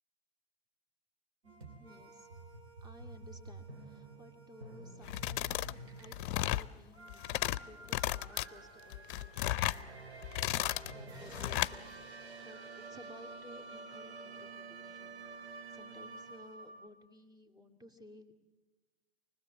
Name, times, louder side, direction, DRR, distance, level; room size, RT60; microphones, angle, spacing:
sound 1, 1.4-16.9, right 3 dB, 80° right, 3.8 m, -50 dB
voice 1, 1.8-2.3 2.8-10.2 10.9-18.3, left 1 dB, 10° right, 6 dB, 2.4 m, -57 dB
sound 2, 5.0-5.7 6.0-6.7 7.1-7.6 7.9-8.5 8.9-9.8 10.2-10.9 11.3-11.7, left 14 dB, 50° left, 0.6 m, -34 dB
25.0 x 20.0 x 7.4 m, 1.2 s
figure-of-eight pair, 100°, 32 cm